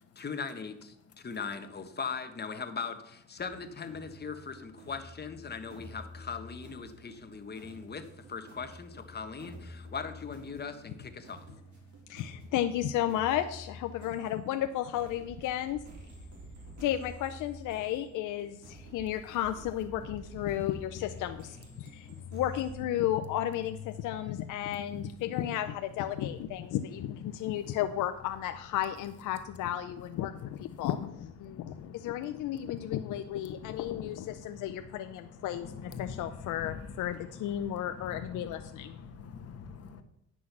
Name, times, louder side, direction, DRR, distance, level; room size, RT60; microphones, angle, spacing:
voice 1, 0.2-11.5, left 5 dB, 35° left, 7 dB, 1.3 m, -39 dB
sound 1, 3.4-22.8, equal, 70° right, 3.7 m, -49 dB
voice 2, 7.5-7.9 9.8-9.9 11.8-12.3 16.3-16.5 18.8-19.0 21.3-22.4 23.0-23.6 23.9-25.4 26.1-26.8 27.3-27.8 29.9-30.9 31.4-40.0, left 5 dB, 55° left, 6 dB, 1.3 m, -47 dB
voice 3, 12.1-15.8 16.8-39.0, left 12 dB, 85° left, 8 dB, 0.6 m, -33 dB
10.0 x 6.2 x 5.9 m, 0.84 s
cardioid pair, 90°, 30 cm